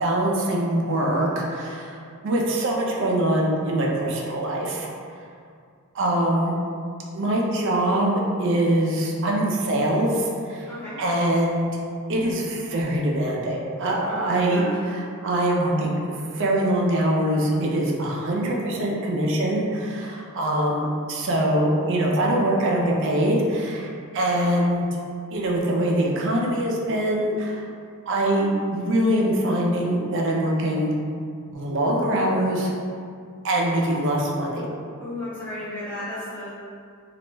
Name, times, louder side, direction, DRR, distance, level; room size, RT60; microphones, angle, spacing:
voice 1, 0.0-2.0 2.2-4.9 5.9-6.5 7.1-10.6 11.0-11.7 12.1-24.9 25.3-27.6 28.1-30.9 31.5-32.7 33.4-34.7, right 1 dB, 55° right, -2 dB, 0.4 m, -23 dB
voice 2, 10.6-11.0 14.1-15.0 35.0-36.5, left 1 dB, 5° left, -14 dB, 0.6 m, -34 dB
2.4 x 2.1 x 3.0 m, 2.3 s
head